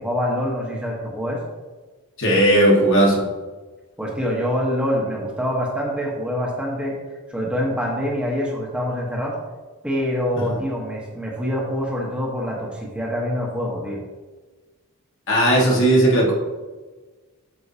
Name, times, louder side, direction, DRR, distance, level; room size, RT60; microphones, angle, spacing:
voice 1, 0.0-1.4 4.0-7.0 7.3-9.4 9.8-14.0, equal, 5° right, -3 dB, 1.1 m, -25 dB
voice 2, 2.2-3.2 15.3-16.3, right 1 dB, 60° left, -3 dB, 1.7 m, -16 dB
8.1 x 6.3 x 2.8 m, 1.3 s
head